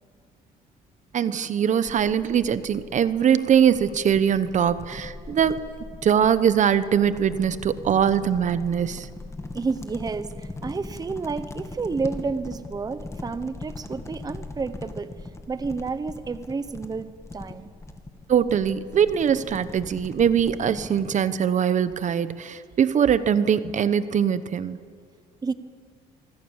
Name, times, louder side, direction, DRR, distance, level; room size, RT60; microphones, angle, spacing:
voice 1, 1.1-5.6 6.0-9.1 18.3-24.8, right 8 dB, 45° right, 14 dB, 1.0 m, -22 dB
sound 1, 1.9-21.2, left 2 dB, 15° left, 2.5 m, -40 dB
voice 2, 9.5-15.1 15.5-17.7 25.4-25.5, right 4 dB, 20° right, 13 dB, 1.0 m, -30 dB
25.0 x 24.5 x 7.3 m, 2.2 s
cardioid pair, 110°, 17 cm